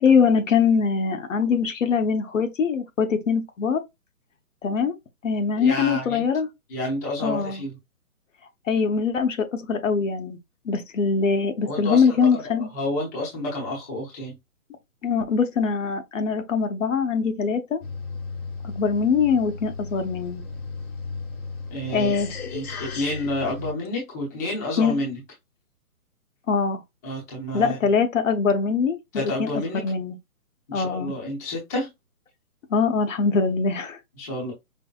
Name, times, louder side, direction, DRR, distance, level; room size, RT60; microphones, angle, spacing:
voice 1, 0.0-3.8 4.6-4.9 5.2-6.5 7.2-7.6 8.7-10.4 10.6-12.7 15.0-17.8 18.6-20.4 21.9-22.3 24.8-24.9 26.5-26.8 27.5-29.5 29.7-30.1 30.7-31.1 32.7-34.0, left 5 dB, 60° left, 0.9 m, -22 dB
voice 2, 5.6-6.3 6.7-7.8 11.7-14.4 21.7-22.1 22.5-25.2 27.0-27.8 29.1-29.8 30.7-31.9 34.2-34.5, left 1 dB, 10° left, 0.7 m, -30 dB
sound 1, 17.8-23.7, left 4 dB, 75° left, 1.4 m, -35 dB
5.3 x 2.0 x 2.3 m
hypercardioid pair, 155°, 44 cm